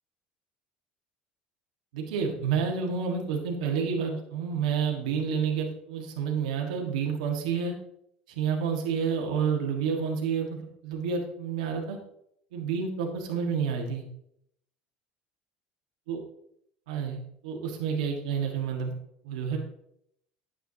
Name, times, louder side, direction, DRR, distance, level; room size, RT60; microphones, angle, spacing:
voice 1, 1.9-7.7 8.3-12.0 12.5-14.0 16.1-16.2 16.9-18.9 19.2-19.6, right 6 dB, 85° right, 1 dB, 1.7 m, -29 dB
9.3 x 8.2 x 2.9 m, 0.74 s
supercardioid pair, 90°, 4 cm